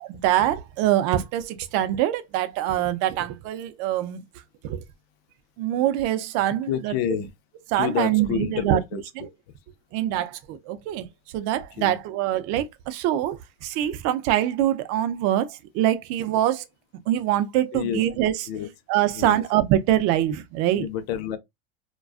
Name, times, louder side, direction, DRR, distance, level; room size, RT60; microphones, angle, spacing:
voice 1, 0.1-4.2 4.6-4.8 5.6-6.9 7.7-8.8 9.2-9.3 9.9-11.1 11.3-16.7 17.1-18.3 18.9-20.9, right 12 dB, 50° right, 0.4 m, -24 dB
voice 2, 6.7-7.3 7.8-9.0 11.8-12.0 17.7-18.0 18.5-18.7 19.1-19.4 20.8-21.4, left 9 dB, 70° left, 0.6 m, -28 dB
2.3 x 2.2 x 2.4 m
supercardioid pair, 130°, 32 cm